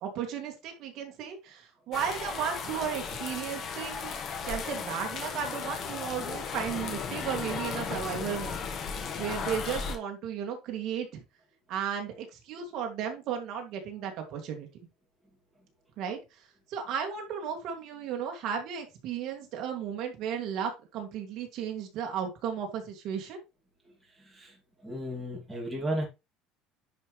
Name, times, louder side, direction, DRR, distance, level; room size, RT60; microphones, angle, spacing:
voice 1, 0.0-4.2 4.4-8.6 9.2-11.2 11.7-14.7 16.0-16.2 16.7-23.4, right 8 dB, 45° right, 3 dB, 2.3 m, -34 dB
sound 1, 1.9-10.0, left 6 dB, 35° left, 1.4 m, -35 dB
voice 2, 24.2-26.0, right 1 dB, 5° right, -3 dB, 2.6 m, -35 dB
10.5 x 5.2 x 3.2 m, 0.25 s
cardioid pair, 175°, 0 cm